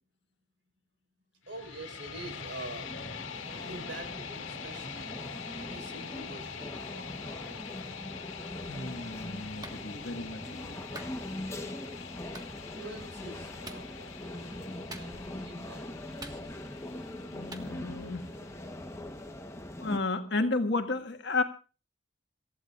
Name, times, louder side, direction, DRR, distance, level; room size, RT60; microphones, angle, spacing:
sound 1, 1.4-19.5, left 6 dB, 75° left, 2.2 m, -44 dB
voice 1, 1.5-2.9 3.5-7.6 12.7-16.6, right 1 dB, 65° right, 5 dB, 4.9 m, -46 dB
sound 2, 2.7-20.0, left 1 dB, 15° left, 1.1 m, -42 dB
voice 2, 8.7-10.8 17.3-18.3 19.8-21.4, left 3 dB, 60° left, 7 dB, 1.7 m, -32 dB
Clapping, 9.6-9.8 10.9-11.2 12.3-12.5 13.6-13.9 14.9-15.4 16.2-16.8 17.5-17.7, right 2 dB, 20° right, 1.6 m, -45 dB
27.0 x 15.0 x 2.5 m, 0.35 s
head